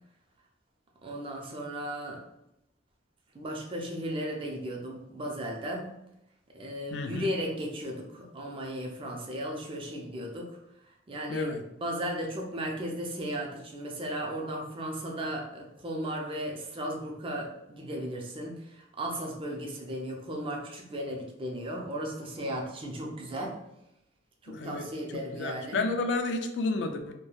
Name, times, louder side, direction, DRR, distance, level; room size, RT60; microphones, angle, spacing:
voice 1, 1.0-2.2 3.3-5.9 6.5-10.6 11.1-23.6 24.4-25.8, equal, 30° right, 0 dB, 0.4 m, -35 dB
voice 2, 6.9-7.3 11.3-11.6 24.5-27.1, left 3 dB, 70° left, 6 dB, 0.3 m, -31 dB
3.0 x 2.1 x 2.3 m, 0.85 s
head